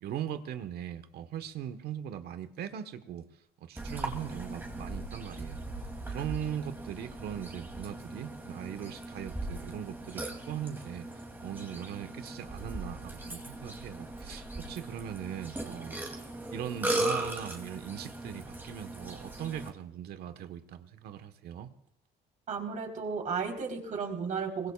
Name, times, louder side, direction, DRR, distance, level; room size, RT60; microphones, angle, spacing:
voice 1, 0.0-3.3 3.6-5.6 6.1-11.1 11.4-16.0 16.5-21.7, right 10 dB, 70° right, 9 dB, 1.3 m, -40 dB
Burping eructation, 3.8-19.7, right 1 dB, 10° right, 2.9 m, -38 dB
voice 2, 22.5-24.7, right 5 dB, 50° right, 2 dB, 4.1 m, -34 dB
24.0 x 21.0 x 2.5 m, 0.78 s
cardioid pair, 110°, 17 cm